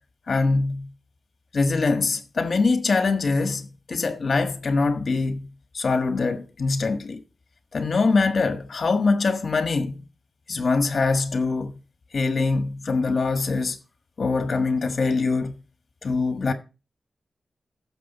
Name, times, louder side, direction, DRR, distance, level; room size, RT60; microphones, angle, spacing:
voice 1, 0.3-0.9 1.5-7.2 7.7-10.0 10.5-11.8 12.1-13.8 14.2-15.5 16.0-16.5, left 3 dB, 55° left, 1.4 m, -23 dB
15.0 x 6.3 x 4.2 m
wide cardioid pair, 130°, 0 cm